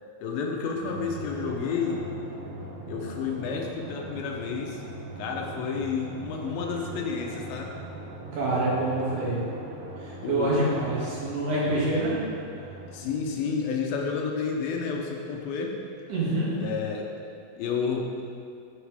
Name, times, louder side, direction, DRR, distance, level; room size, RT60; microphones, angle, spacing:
voice 1, 0.2-2.0 2.9-4.8 5.2-7.7 10.2-10.7 12.9-15.7 16.6-17.1 17.6-18.1, left 5 dB, 75° left, 1 dB, 2.5 m, -30 dB
Drum, 0.7-13.8, right 1 dB, 80° right, 3.1 m, -41 dB
voice 2, 8.3-9.4 10.0-12.2 16.1-16.5, right 2 dB, 60° right, -7 dB, 3.5 m, -26 dB
11.0 x 7.3 x 3.5 m, 2.4 s
omnidirectional pair, 4.4 m